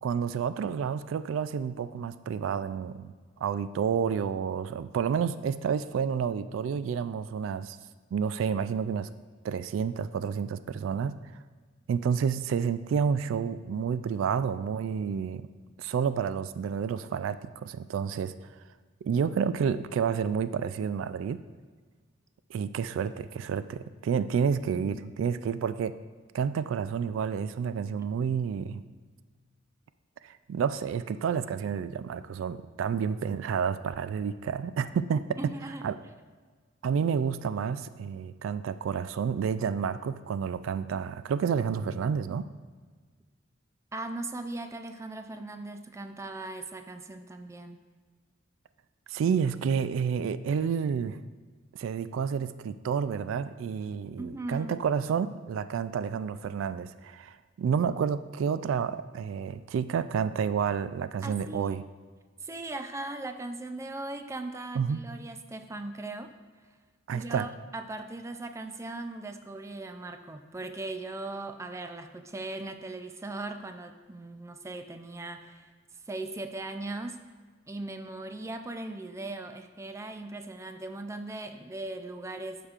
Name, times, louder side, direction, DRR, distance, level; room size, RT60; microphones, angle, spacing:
voice 1, 0.0-3.1 3.4-7.8 8.1-9.1 9.4-11.2 11.9-15.4 15.8-18.3 19.0-21.4 22.5-25.9 26.3-28.8 30.2-35.5 35.8-36.0 36.8-42.5 49.1-51.2 51.7-61.8 64.7-65.0 67.1-67.5, right 7 dB, 90° right, 13 dB, 0.3 m, -30 dB
voice 2, 24.7-25.1 28.0-28.1 35.4-35.9 43.9-47.8 54.2-54.7 61.2-61.8 62.4-66.3 67.1-75.7 76.1-77.2 77.7-82.7, right 2 dB, 15° right, 7 dB, 0.4 m, -39 dB
11.5 x 5.0 x 2.4 m, 1.5 s
head